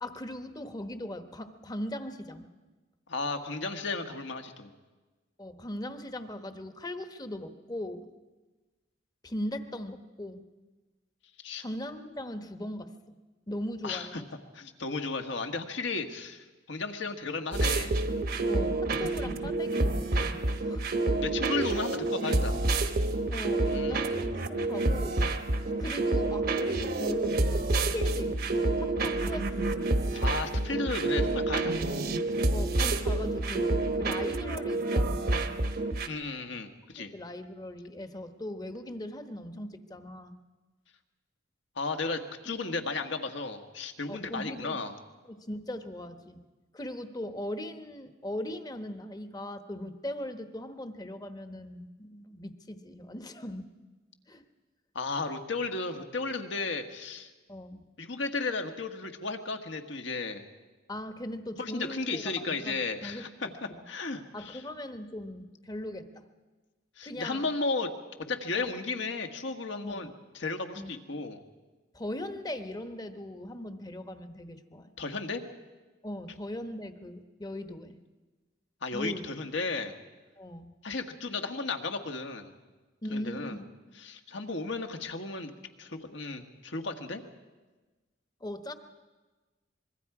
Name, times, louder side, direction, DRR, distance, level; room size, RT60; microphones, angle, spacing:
voice 1, 0.0-2.5 5.4-8.1 9.2-10.4 11.6-12.9 13.5-14.3 18.5-20.9 23.3-25.3 25.8-29.8 32.5-35.6 37.0-40.4 44.1-44.8 45.3-46.4 46.7-53.7 54.3-54.4 57.5-57.8 60.9-63.3 63.7-63.9 64.3-66.2 67.0-67.5 68.5-68.7 69.8-70.1 70.8-70.9 71.9-74.9 76.0-78.0 78.9-79.3 80.4-80.7 83.0-83.7 88.4-88.7, left 1 dB, 20° left, 8 dB, 1.1 m, -39 dB
voice 2, 3.1-4.7 11.4-11.6 13.8-14.2 14.5-17.9 21.2-22.6 23.7-24.1 30.1-32.1 36.1-37.1 41.7-45.0 54.9-57.3 58.0-60.5 61.6-64.6 67.0-67.9 68.3-71.4 75.0-75.4 78.8-79.9 80.8-82.5 83.1-83.6 84.0-85.5 85.8-87.2, left 3 dB, 70° left, 6 dB, 1.6 m, -34 dB
sound 1, 17.5-36.1, right 2 dB, 55° right, 1.1 m, -28 dB
25.0 x 22.0 x 4.9 m, 1.2 s
head